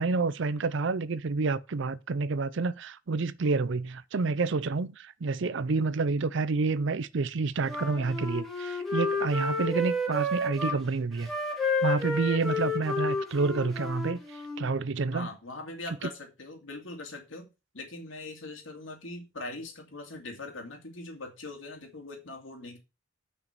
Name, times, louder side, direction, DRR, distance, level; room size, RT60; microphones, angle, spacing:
voice 1, 0.0-11.3 11.6-14.2 14.6-15.3 16.0-16.1, right 4 dB, 65° right, 0.5 m, -29 dB
Wind instrument woodwind instrument, 7.6-10.8 11.2-14.7, left 2 dB, ahead, 2.2 m, -31 dB
voice 2, 15.1-17.5 17.7-22.8, left 2 dB, 70° left, 2.6 m, -41 dB
6.3 x 5.8 x 6.7 m
head